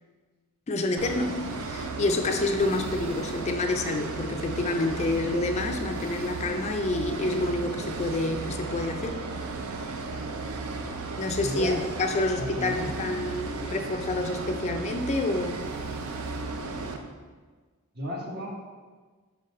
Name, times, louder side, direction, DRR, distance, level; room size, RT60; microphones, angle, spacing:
voice 1, 0.7-9.2 11.2-15.6, left 2 dB, 30° left, 5 dB, 0.4 m, -28 dB
sound 1, 1.0-17.0, right 3 dB, 80° right, 0.5 m, -35 dB
voice 2, 11.4-11.8 12.4-13.0 17.9-18.5, equal, 50° right, -1 dB, 1.1 m, -33 dB
5.8 x 3.9 x 4.2 m, 1.4 s
head